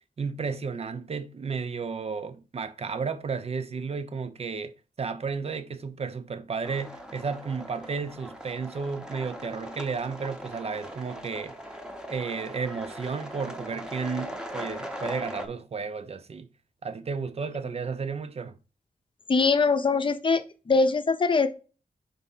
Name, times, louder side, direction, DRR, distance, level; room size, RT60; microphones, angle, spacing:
voice 1, 0.2-11.6 12.1-16.5 16.8-18.5, right 5 dB, 45° right, 0.6 m, -33 dB
sound 1, 6.6-15.5, equal, 5° right, 0.8 m, -40 dB
voice 2, 19.3-20.4 20.7-21.5, left 4 dB, 35° left, 0.7 m, -22 dB
5.3 x 3.4 x 5.5 m
wide cardioid pair, 160°, 15 cm